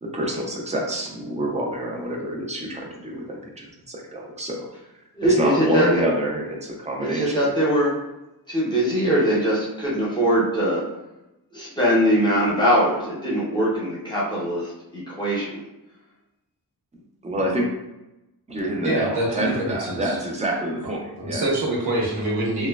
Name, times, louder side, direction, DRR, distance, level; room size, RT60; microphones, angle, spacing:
voice 1, 0.0-4.7 5.3-7.5 17.2-17.7 18.5-21.5, right 1 dB, 20° right, -1 dB, 0.4 m, -27 dB
voice 2, 5.1-6.0 7.0-7.9 8.5-10.8 11.5-15.6, equal, 10° left, -7 dB, 0.7 m, -22 dB
voice 3, 18.8-20.2 21.2-22.7, right 1 dB, 85° right, -4 dB, 0.9 m, -25 dB
2.9 x 2.1 x 2.2 m, 0.93 s
wide cardioid pair, 155°, 38 cm